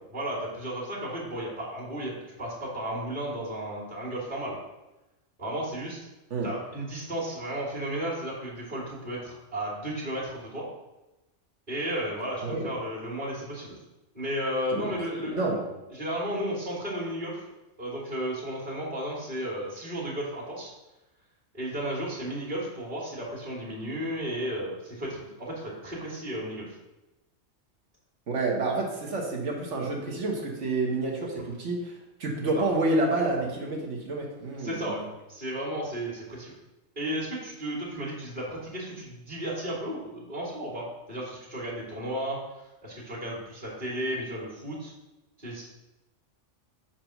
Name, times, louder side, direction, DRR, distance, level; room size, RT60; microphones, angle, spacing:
voice 1, 0.1-4.6 5.4-6.0 6.4-10.7 11.7-13.8 14.1-15.4 15.9-17.4 17.8-20.7 21.5-26.8 32.5-32.6 34.5-35.0 35.3-36.5 37.0-42.4 42.8-44.9 45.4-45.6, equal, 35° right, -7 dB, 2.0 m, -34 dB
voice 2, 15.2-15.6 28.3-35.1, right 2 dB, 70° right, -1 dB, 1.6 m, -29 dB
7.2 x 2.8 x 5.8 m, 1.0 s
omnidirectional pair, 1.3 m